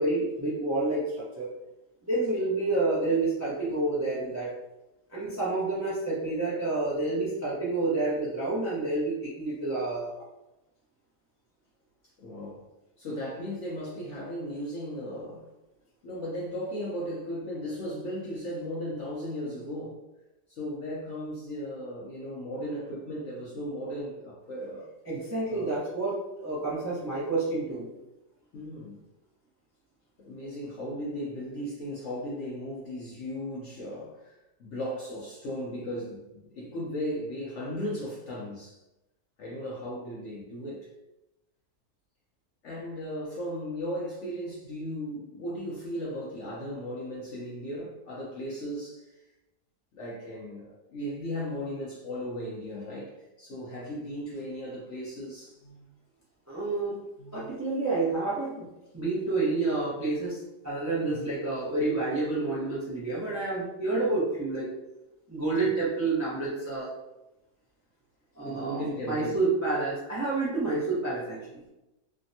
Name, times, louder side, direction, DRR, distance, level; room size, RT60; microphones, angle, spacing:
voice 1, 0.0-1.5 2.0-4.5 5.1-10.1 25.1-27.9 56.5-56.9 57.3-58.7 58.9-64.7 65.3-66.9 68.4-71.6, right 2 dB, 25° right, 0.3 m, -29 dB
voice 2, 12.2-12.6 13.0-15.5 16.0-20.0 20.5-24.9 25.5-25.8 28.5-29.0 30.2-34.3 34.6-38.8 39.4-40.9 42.6-49.2 49.9-55.9 57.2-57.5 61.0-61.3 68.4-69.4, equal, 60° left, 0.7 m, -36 dB
3.3 x 2.1 x 2.7 m
omnidirectional pair, 1.8 m